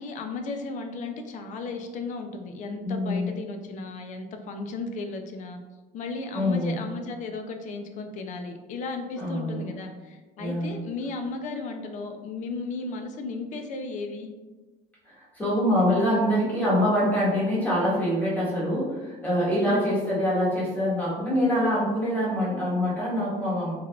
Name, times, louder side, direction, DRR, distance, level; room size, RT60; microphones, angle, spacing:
voice 1, 0.0-5.6 5.9-14.3 19.6-20.0, left 3 dB, 45° left, 5 dB, 0.4 m, -35 dB
voice 2, 2.8-3.3 6.3-6.7 9.2-9.6 10.4-10.7 15.0-23.7, equal, 10° left, -9 dB, 1.2 m, -25 dB
3.3 x 2.3 x 2.3 m, 1.2 s
cardioid pair, 140°, 18 cm